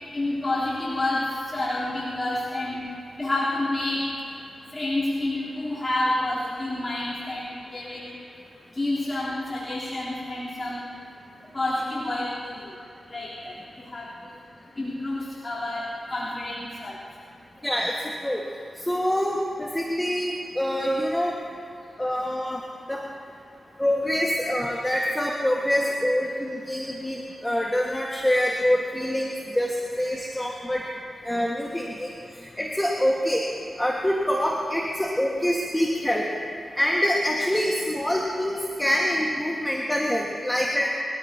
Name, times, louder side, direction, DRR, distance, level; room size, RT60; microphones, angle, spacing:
voice 1, 0.1-4.3 4.7-8.1 8.7-10.9 11.5-12.8 13.1-17.2, left 1 dB, 30° left, -9 dB, 3.5 m, -29 dB
voice 2, 17.6-18.4 18.9-21.3 22.0-22.6 22.9-23.0 23.8-30.8 31.2-32.1 32.6-33.4 33.8-36.3 36.7-40.9, equal, 10° left, -2 dB, 1.7 m, -25 dB
28.5 x 14.0 x 2.9 m, 2.6 s
cardioid pair, 50°, 0 cm